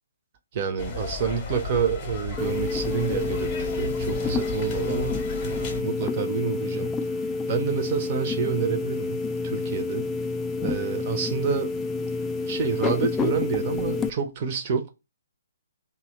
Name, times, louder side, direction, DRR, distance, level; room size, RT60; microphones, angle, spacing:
voice 1, 0.5-6.9 7.5-10.1 10.6-12.1 12.4-14.9, right 6 dB, 35° right, 0.7 m, -28 dB
sound 1, 0.8-5.8, left 3 dB, 25° left, 0.8 m, -34 dB
sound 2, 2.4-14.1, left 3 dB, 10° left, 0.3 m, -29 dB
2.8 x 2.1 x 3.6 m
figure-of-eight pair, 130°, 0 cm